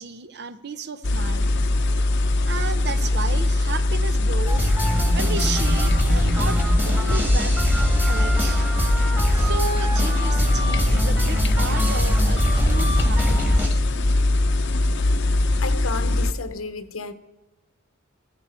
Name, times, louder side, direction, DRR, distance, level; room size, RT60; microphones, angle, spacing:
voice 1, 0.0-1.5 2.4-4.7 5.1-7.5 8.0-8.6 9.3-13.8, right 4 dB, 55° right, 0.9 m, -33 dB
sound 1, 1.0-16.3, left 2 dB, 60° left, 0.8 m, -21 dB
sound 2, 4.5-13.7, equal, 10° right, 1.9 m, -24 dB
voice 2, 15.6-17.1, left 4 dB, 80° left, 1.0 m, -32 dB
15.5 x 14.0 x 4.4 m
head